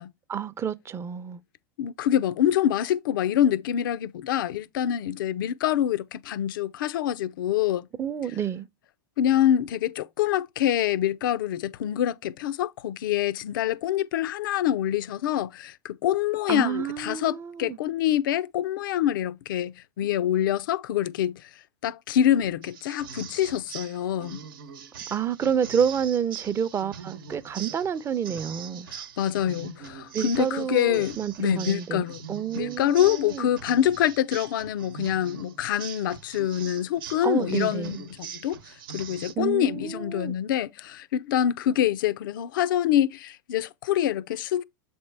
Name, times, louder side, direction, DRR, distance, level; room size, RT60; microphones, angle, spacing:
voice 1, 0.3-1.4 8.0-8.7 16.5-17.8 25.1-28.9 30.1-33.5 37.2-38.0 39.4-40.3, right 8 dB, 25° right, 0.5 m, -29 dB
voice 2, 1.8-7.9 9.2-21.5 21.8-24.4 28.9-32.2 32.5-38.6 38.9-44.6, left 11 dB, 75° left, 0.4 m, -26 dB
sound 1, 22.6-39.3, right 7 dB, 80° right, 0.9 m, -42 dB
7.2 x 4.3 x 3.3 m
hypercardioid pair, 105°, 11 cm